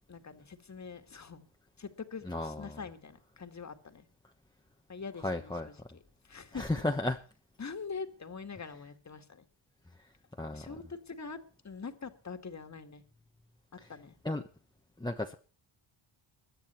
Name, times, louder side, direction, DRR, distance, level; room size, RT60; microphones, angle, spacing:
voice 1, 0.1-1.5 1.8-4.1 4.9-5.7 6.3-6.8 7.6-9.5 10.5-11.4 11.6-13.0 13.9-14.2, left 5 dB, 35° left, 8 dB, 2.0 m, -44 dB
voice 2, 2.2-2.8 5.2-5.7 6.5-7.2 10.4-10.7 13.8-13.9 14.2-14.4 15.0-15.3, left 2 dB, 10° left, 2 dB, 1.1 m, -34 dB
22.5 x 9.0 x 4.5 m, 0.39 s
wide cardioid pair, 120°, 50 cm